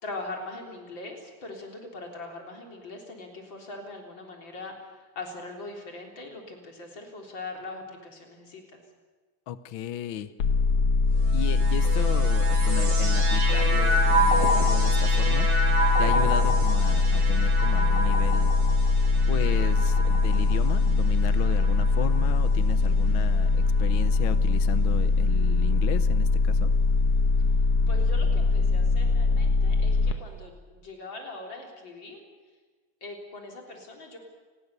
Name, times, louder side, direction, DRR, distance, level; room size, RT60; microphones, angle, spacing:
voice 1, 0.0-4.8 5.2-8.8 27.9-32.3 33.0-34.2, left 2 dB, 40° left, 1 dB, 4.3 m, -41 dB
voice 2, 9.5-10.3 11.3-15.5 16.0-18.5 19.3-26.7, left 10 dB, 80° left, 13 dB, 1.1 m, -35 dB
sound 1, 10.4-30.1, left 3 dB, 55° left, 2.1 m, -22 dB
sound 2, 11.2-22.7 23.5-24.2, right 1 dB, 75° right, 5.1 m, -30 dB
28.5 x 20.5 x 6.8 m, 1.4 s
omnidirectional pair, 3.4 m